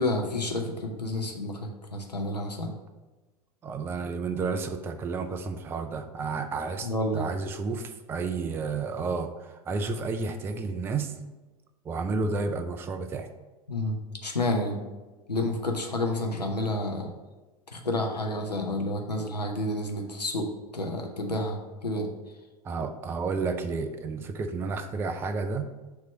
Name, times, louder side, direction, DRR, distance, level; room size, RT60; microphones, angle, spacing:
voice 1, 0.0-2.7 6.8-7.2 13.7-14.0 14.2-14.8 15.3-17.1 17.7-22.1, left 1 dB, 85° left, 1 dB, 0.8 m, -30 dB
voice 2, 3.6-11.1 11.8-13.3 22.6-25.7, right 4 dB, 10° right, 8 dB, 0.3 m, -31 dB
6.5 x 3.0 x 5.3 m, 1.2 s
figure-of-eight pair, 85°, 20 cm